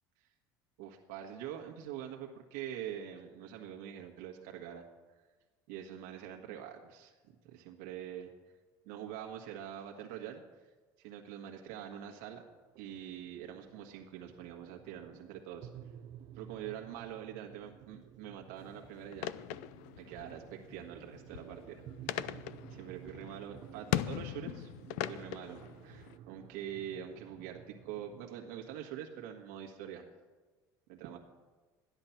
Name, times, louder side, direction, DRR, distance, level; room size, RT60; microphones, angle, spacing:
voice 1, 0.8-4.8 5.7-7.1 7.4-8.3 8.8-10.4 11.0-12.4 12.8-15.7 16.3-19.3 20.0-22.4 22.7-24.7 25.0-30.0 30.9-31.2, right 10 dB, 90° right, 1 dB, 1.5 m, -45 dB
sound 1, 11.6-28.3, right 11 dB, 50° right, 0.6 m, -54 dB
sound 2, 18.6-26.2, left 14 dB, 90° left, 0.5 m, -40 dB
14.0 x 10.5 x 5.8 m, 1.3 s
cardioid pair, 145°, 8 cm